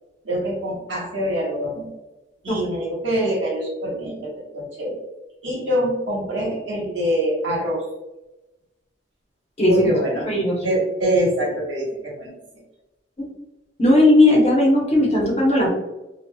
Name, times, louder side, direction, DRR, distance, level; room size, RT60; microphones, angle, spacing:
voice 1, 0.2-1.9 2.4-5.0 5.4-7.8 9.7-10.3 10.6-12.3, right 1 dB, 85° right, -5 dB, 1.2 m, -24 dB
voice 2, 9.6-9.9 10.3-10.6 13.2-13.3 13.8-15.7, left 1 dB, 35° left, -4 dB, 0.9 m, -16 dB
3.0 x 2.4 x 2.2 m, 1.0 s
head